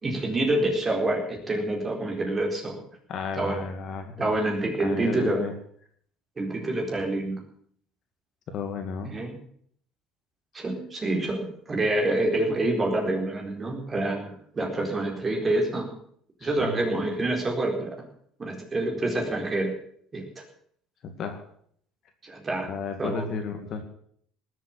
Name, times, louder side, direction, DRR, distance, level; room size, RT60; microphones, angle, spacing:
voice 1, 0.0-2.8 3.4-3.6 4.2-5.4 6.4-7.4 9.0-9.3 10.5-15.9 16.4-17.9 18.4-19.7 20.1-20.3 22.2-22.7 23.0-23.3, right 2 dB, 20° right, 0 dB, 4.3 m, -27 dB
voice 2, 3.1-4.4 4.8-5.5 8.5-9.1 16.4-16.8 21.0-21.4 22.7-23.8, left 5 dB, 45° left, 5 dB, 2.2 m, -33 dB
19.5 x 7.6 x 8.5 m, 0.64 s
cardioid pair, 145°, 0 cm